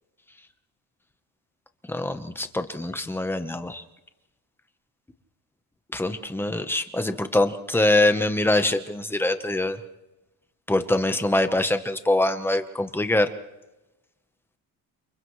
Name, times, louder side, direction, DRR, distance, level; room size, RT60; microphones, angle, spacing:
voice 1, 1.9-3.8 5.9-9.8 10.7-13.3, left 1 dB, 5° left, 8 dB, 1.0 m, -24 dB
29.5 x 28.0 x 3.2 m, 1.0 s
cardioid pair, 170°, 37 cm